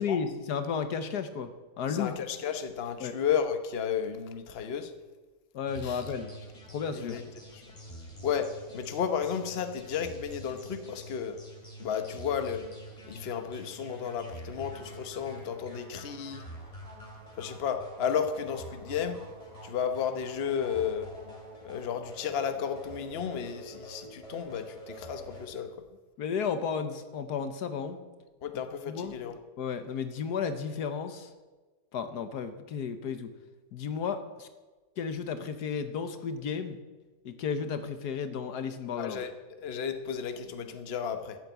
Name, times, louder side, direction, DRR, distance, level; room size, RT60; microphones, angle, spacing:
voice 1, 0.0-2.2 3.0-3.1 5.5-6.3 6.7-7.2 26.2-28.0 28.9-29.2 29.6-31.3 31.9-33.3 33.7-34.5 35.0-36.8 37.2-39.2, left 6 dB, 75° left, 9 dB, 1.5 m, -33 dB
voice 2, 1.9-4.9 5.8-6.0 6.9-7.2 7.5-7.6 8.2-11.4 11.8-12.6 13.0-16.4 17.4-19.2 19.6-21.1 21.6-25.7 28.4-29.3 39.0-39.3 39.6-41.4, left 7 dB, 45° left, 8 dB, 1.1 m, -33 dB
sound 1, 5.7-25.5, equal, 20° left, 2.9 m, -47 dB
13.5 x 9.2 x 8.1 m, 1.3 s
omnidirectional pair, 1.7 m